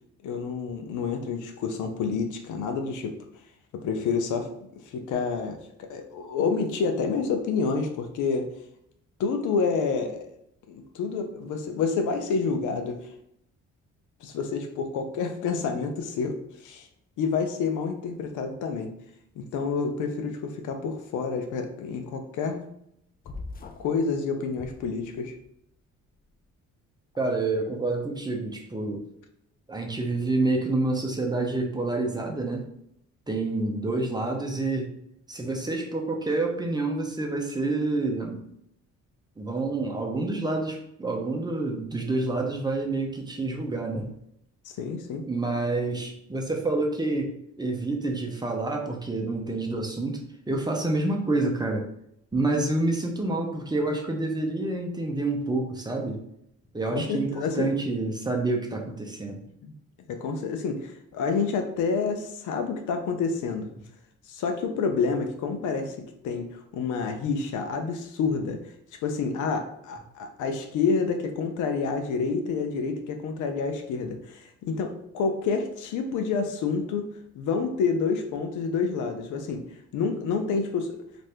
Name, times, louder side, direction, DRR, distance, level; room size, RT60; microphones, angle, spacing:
voice 1, 0.2-3.1 3.7-4.5 4.8-8.5 9.2-10.3 10.7-13.1 14.2-16.9 17.2-18.9 19.4-22.6 23.8-25.3 44.7-45.3 56.9-57.8 59.6-59.7 60.1-63.7 64.3-68.6 69.0-77.1 77.3-79.6 79.9-81.0, left 5 dB, 80° left, 6 dB, 0.6 m, -28 dB
sound 1, 23.2-24.0 24.5-25.4, left 3 dB, 30° left, 0.4 m, -41 dB
voice 2, 27.2-29.0 29.7-32.7 33.3-34.9 35.3-38.4 39.4-44.1 45.3-50.2 50.5-51.8 52.3-56.2 56.7-59.4, right 2 dB, 15° right, 0 dB, 0.6 m, -28 dB
2.6 x 2.5 x 3.3 m, 0.74 s
cardioid pair, 90°, 30 cm